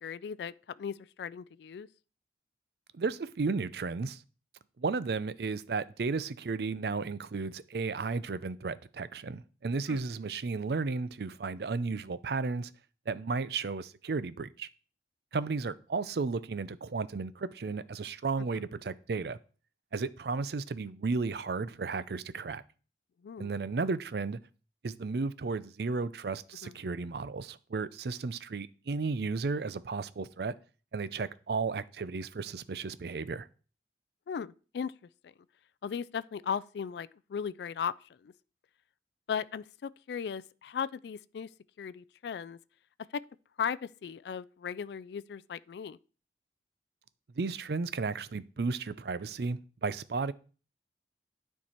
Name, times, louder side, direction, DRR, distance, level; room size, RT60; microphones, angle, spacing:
voice 1, 0.0-1.9 9.9-10.0 23.2-23.5 26.6-26.7 34.3-34.9 35.2-35.3 35.8-38.3 39.3-41.5 41.8-42.6 43.1-43.2 43.6-46.0, left 7 dB, 70° left, 0.3 m, -37 dB
voice 2, 2.9-4.2 4.8-12.7 13.1-14.7 15.3-19.4 19.9-22.6 23.4-24.4 24.8-30.5 30.9-33.5 47.4-50.3, right 4 dB, 65° right, 0.5 m, -34 dB
9.8 x 4.6 x 4.4 m
head